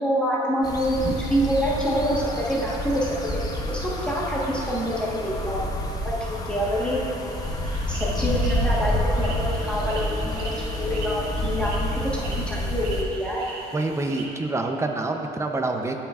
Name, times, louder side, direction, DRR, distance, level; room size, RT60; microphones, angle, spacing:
voice 1, 0.0-1.0 1.3-3.1 3.7-5.6 6.3-7.0 7.9-11.9 12.3-13.4, equal, 5° left, -6 dB, 1.3 m, -26 dB
sound 1, 0.6-13.0, left 1 dB, 20° left, 0.8 m, -28 dB
sound 2, 7.3-14.2, right 2 dB, 80° right, 1.7 m, -40 dB
voice 2, 13.7-15.9, right 2 dB, 15° right, 4 dB, 0.6 m, -27 dB
13.0 x 5.9 x 2.5 m, 2.8 s
cardioid pair, 110°, 17 cm